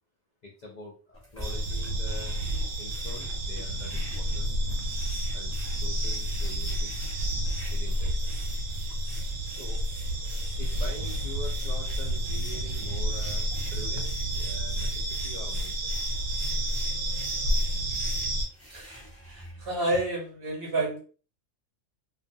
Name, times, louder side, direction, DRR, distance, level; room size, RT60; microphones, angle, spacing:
voice 1, 0.4-2.4 2.8-4.6 5.3-6.9 7.7-8.3 9.5-9.8 10.6-15.9, left 2 dB, 60° left, -1 dB, 0.4 m, -45 dB
sound 1, 1.1-19.8, equal, 10° left, 1.0 m, -47 dB
sound 2, 1.4-18.5, right 1 dB, 80° right, 1.0 m, -30 dB
voice 2, 19.3-21.0, right 2 dB, 55° right, 0 dB, 0.8 m, -30 dB
2.4 x 2.3 x 2.6 m, 0.37 s
omnidirectional pair, 1.4 m